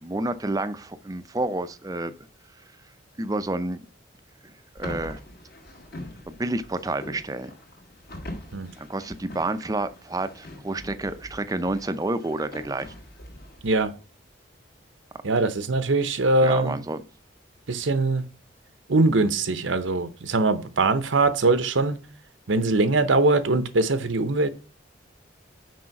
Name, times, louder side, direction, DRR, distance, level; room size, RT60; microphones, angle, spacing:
voice 1, 0.0-2.1 3.2-3.9 4.4-5.2 6.3-7.5 8.8-12.9 16.4-17.0, right 2 dB, 20° right, 0.5 m, -29 dB
sound 1, 4.8-13.8, left 1 dB, 55° left, 1.8 m, -43 dB
voice 2, 15.2-16.8 17.7-18.3 18.9-22.0 22.5-24.5, right 3 dB, 80° right, 0.8 m, -22 dB
6.2 x 4.9 x 5.8 m
head